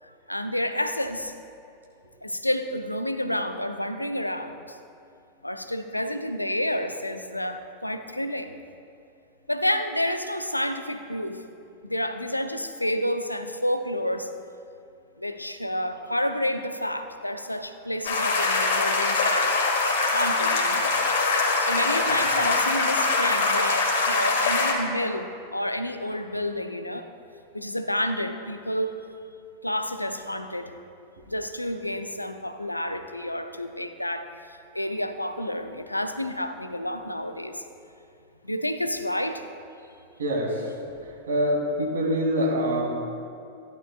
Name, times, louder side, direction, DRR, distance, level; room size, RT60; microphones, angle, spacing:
voice 1, 0.0-1.3 2.2-4.8 5.4-8.5 9.5-11.4 11.8-14.3 15.2-19.6 20.1-20.9 21.6-27.1 27.5-29.0 29.6-30.7 31.3-37.6 38.4-39.5, left 1 dB, 85° left, 8 dB, 0.5 m, -29 dB
sound 1, 18.0-24.7, left 3 dB, 60° left, 1.8 m, -23 dB
voice 2, 40.2-40.7 41.0-42.8, equal, 65° right, -2 dB, 2.4 m, -25 dB
15.0 x 11.0 x 2.3 m, 2.5 s
figure-of-eight pair, 90°, 0 cm